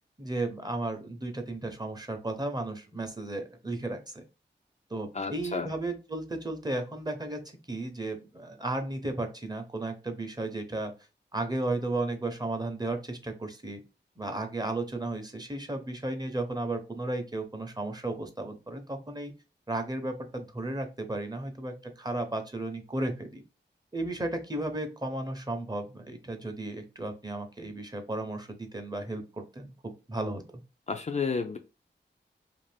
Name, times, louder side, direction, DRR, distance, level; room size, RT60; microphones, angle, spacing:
voice 1, 0.2-4.2 4.9-7.4 7.7-10.9 11.3-13.8 14.2-19.3 19.7-23.4 23.9-30.4, right 2 dB, 20° right, 6 dB, 0.7 m, -34 dB
voice 2, 5.1-5.7 30.9-31.6, left 5 dB, 40° left, 6 dB, 0.4 m, -31 dB
2.6 x 2.4 x 3.3 m, 0.30 s
cardioid pair, 50°, 19 cm